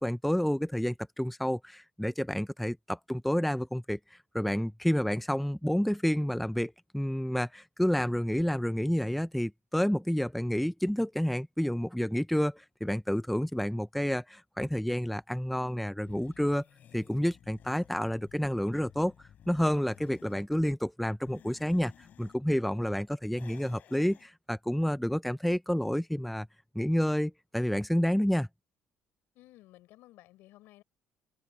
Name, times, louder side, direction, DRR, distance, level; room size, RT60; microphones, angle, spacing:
voice 1, 0.0-16.6 16.9-19.1 19.5-21.9 22.2-26.5 26.7-28.5, equal, ahead, 0.6 m, -29 dB
sound 1, 16.0-20.5 21.1-22.4 23.3-24.3, left 10 dB, 50° left, 7.7 m, -56 dB
voice 2, 29.3-30.8, left 17 dB, 75° left, 5.3 m, -55 dB
cardioid pair, 130°, 4 cm